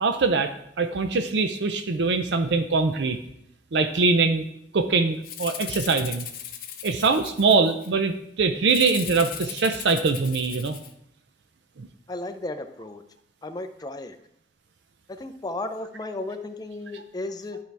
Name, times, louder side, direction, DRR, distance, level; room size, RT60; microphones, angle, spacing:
voice 1, 0.0-0.5 0.8-3.2 3.7-4.4 4.7-6.3 6.8-10.8 11.8-11.9 16.9-17.0, right 4 dB, 70° right, 8 dB, 0.5 m, -23 dB
Rattle (instrument), 5.2-7.9 8.7-10.9, left 9 dB, 55° left, 0.8 m, -37 dB
voice 2, 12.1-13.0 13.4-14.2 15.2-17.6, left 2 dB, 20° left, 8 dB, 0.5 m, -34 dB
11.5 x 4.7 x 3.4 m, 0.75 s
head